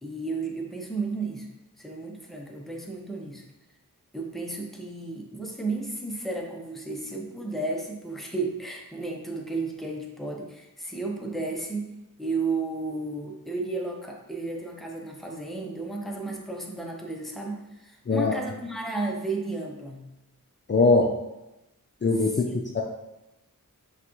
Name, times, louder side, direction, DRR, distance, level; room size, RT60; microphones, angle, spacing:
voice 1, 0.0-1.5 1.8-3.4 4.1-11.9 12.2-20.0 22.3-22.6, right 3 dB, ahead, 0 dB, 0.7 m, -33 dB
voice 2, 18.1-18.4 20.7-21.1 22.0-22.8, left 3 dB, 35° left, 0 dB, 0.4 m, -22 dB
5.7 x 2.4 x 3.0 m, 0.94 s
wide cardioid pair, 45°, 35 cm